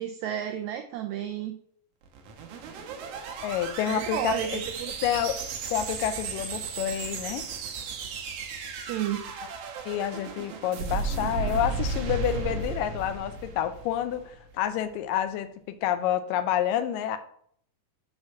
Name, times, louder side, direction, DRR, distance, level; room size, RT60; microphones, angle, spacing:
voice 1, 0.0-1.6 3.9-4.9 8.7-9.2, right 10 dB, 85° right, 5 dB, 1.6 m, -32 dB
explosion a lo toriyama, 2.0-14.4, right 4 dB, 70° right, 1.5 m, -34 dB
voice 2, 3.4-4.6 5.0-5.4 5.7-7.5 9.9-15.5 15.8-17.2, left 10 dB, 85° left, 10 dB, 2.3 m, -28 dB
6.2 x 4.2 x 6.2 m, 0.64 s
omnidirectional pair, 3.8 m